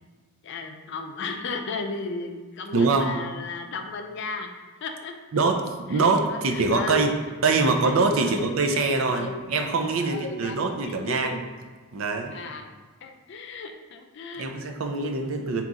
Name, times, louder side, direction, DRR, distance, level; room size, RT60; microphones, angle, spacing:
voice 1, 0.4-4.5 4.8-5.4 5.9-7.1 7.5-9.4 10.0-11.4 12.3-12.7 13.0-14.5 15.2-15.5, left 3 dB, 55° left, 5 dB, 0.4 m, -35 dB
voice 2, 2.7-3.1 5.3-7.1 7.4-11.4 11.9-12.4 14.4-15.6, right 3 dB, 65° right, 4 dB, 0.4 m, -24 dB
3.8 x 2.9 x 3.6 m, 1.4 s
head